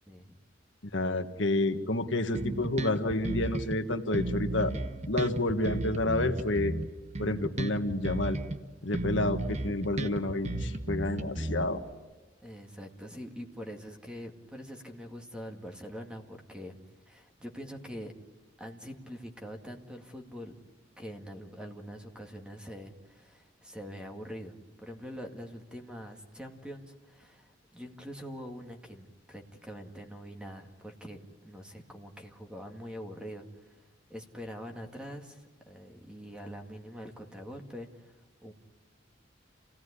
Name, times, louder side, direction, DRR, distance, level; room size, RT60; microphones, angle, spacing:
voice 1, 0.1-0.4 12.4-16.8 17.1-18.1 18.6-20.5 21.0-24.6 24.8-33.8 34.1-38.5, equal, 5° right, 3 dB, 2.0 m, -44 dB
voice 2, 0.9-4.7 5.1-6.7 7.2-8.4 8.8-11.8, left 2 dB, 80° left, 6 dB, 1.6 m, -29 dB
Bass guitar, 2.3-3.8 4.1-8.6 8.9-11.9, right 1 dB, 40° right, 1.1 m, -34 dB
28.0 x 17.5 x 9.9 m, 1.2 s
head